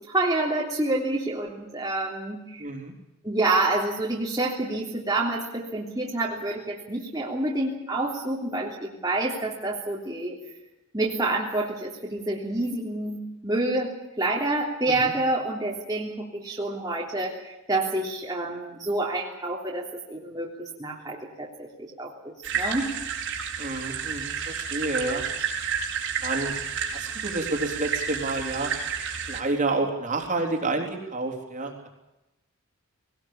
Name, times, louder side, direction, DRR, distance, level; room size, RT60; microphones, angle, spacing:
voice 1, 0.1-2.6 3.2-10.4 10.9-13.9 14.2-17.4 17.7-21.7 22.0-22.9, right 2 dB, 15° right, -4 dB, 3.3 m, -28 dB
voice 2, 2.6-2.9 14.9-15.1 23.6-25.2 26.2-26.5 26.9-28.7 29.3-31.9, right 2 dB, 35° right, 2 dB, 3.8 m, -29 dB
sound 1, 22.4-29.4, right 7 dB, 55° right, 4.2 m, -31 dB
20.0 x 19.0 x 8.8 m, 0.94 s
head